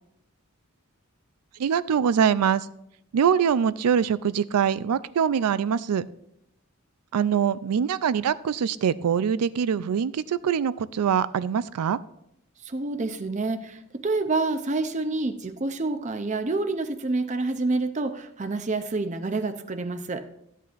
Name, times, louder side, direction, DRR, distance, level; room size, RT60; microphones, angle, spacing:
voice 1, 1.6-2.6 3.1-6.1 7.1-12.0, right 7 dB, 90° right, 17 dB, 0.4 m, -23 dB
voice 2, 12.6-20.3, right 3 dB, 30° right, 9 dB, 0.5 m, -28 dB
14.0 x 8.2 x 2.5 m, 0.77 s
head